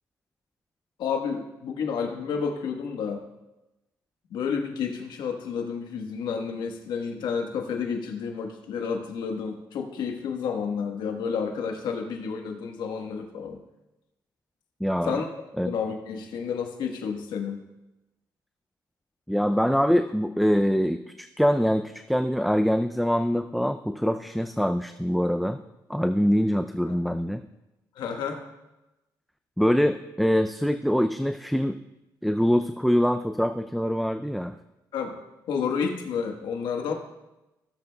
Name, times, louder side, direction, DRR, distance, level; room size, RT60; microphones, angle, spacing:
voice 1, 1.0-3.3 4.3-13.6 15.0-15.3 15.6-17.6 26.9-27.0 27.9-28.4 34.9-35.2 35.5-36.9, left 6 dB, 80° left, 3 dB, 1.3 m, -30 dB
voice 2, 14.8-15.2 15.6-15.7 19.3-25.6 25.9-27.4 29.6-31.8 32.2-34.5, equal, ahead, 8 dB, 0.4 m, -24 dB
16.5 x 7.6 x 2.3 m, 0.98 s
cardioid pair, 85°, 8 cm